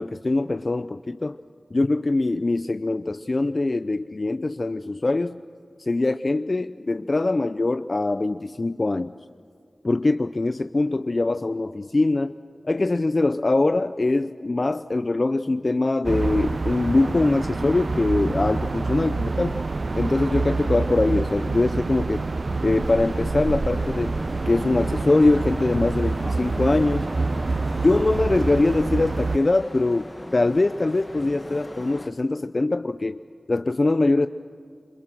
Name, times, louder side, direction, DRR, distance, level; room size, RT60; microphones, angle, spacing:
voice 1, 0.0-1.4 1.7-5.4 5.8-9.1 9.8-12.4 12.6-19.6 19.9-22.2 22.6-24.2 24.5-27.1 27.8-33.2 33.5-34.3, left 2 dB, 45° left, 11 dB, 0.5 m, -23 dB
sound 1, 16.0-29.4, right 3 dB, 60° right, 0.6 m, -27 dB
sound 2, 22.8-32.1, left 1 dB, 20° left, 1.3 m, -39 dB
28.5 x 27.0 x 6.2 m, 2.3 s
wide cardioid pair, 70°, 0 cm